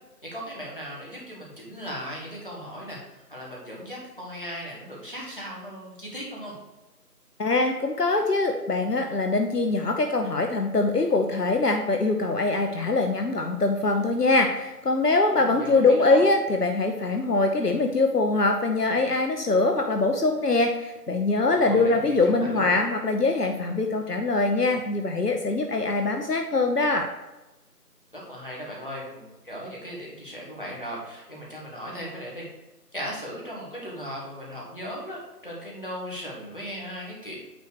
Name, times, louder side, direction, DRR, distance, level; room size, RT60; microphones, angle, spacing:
voice 1, 0.3-6.6 15.3-16.2 21.5-22.7 28.1-32.4 32.9-37.4, equal, 35° left, -4 dB, 1.8 m, -37 dB
voice 2, 7.4-27.1, left 3 dB, 75° left, 4 dB, 0.9 m, -23 dB
9.2 x 3.2 x 6.4 m, 1.0 s
figure-of-eight pair, 175°, 48 cm